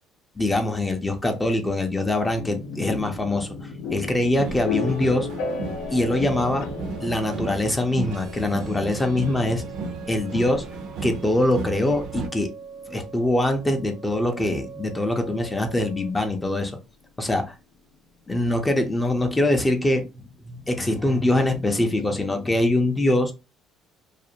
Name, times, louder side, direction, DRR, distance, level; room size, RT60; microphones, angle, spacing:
voice 1, 0.4-5.3 5.9-6.7 7.0-9.6 10.1-10.6 11.0-12.5 12.9-16.8 17.2-17.5 18.3-20.1 20.4-23.3, left 1 dB, 15° left, 0.5 m, -23 dB
sound 1, 2.4-16.1, left 5 dB, 75° left, 0.6 m, -36 dB
sound 2, 4.4-12.3, right 4 dB, 70° right, 0.5 m, -34 dB
sound 3, 8.1-16.1, right 6 dB, 90° right, 0.9 m, -43 dB
2.4 x 2.0 x 2.7 m
cardioid pair, 105°, 0 cm